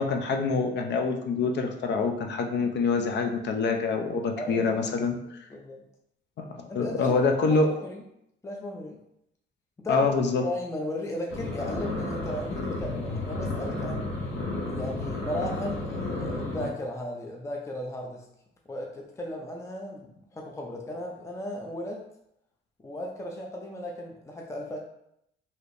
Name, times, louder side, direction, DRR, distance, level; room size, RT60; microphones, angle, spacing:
voice 1, 0.0-5.4 6.4-7.7 9.9-10.5, left 4 dB, 60° left, 4 dB, 0.5 m, -26 dB
voice 2, 4.4-4.8 5.5-5.8 6.7-7.1 7.5-8.0 8.4-9.0 9.8-10.1 10.4-14.1 14.7-18.3 18.7-22.0 22.8-24.8, left 1 dB, 15° left, 0 dB, 0.5 m, -35 dB
sound 1, 11.3-16.7, left 2 dB, 75° left, 0.9 m, -32 dB
3.3 x 2.8 x 2.5 m, 0.77 s
cardioid pair, 90°, 20 cm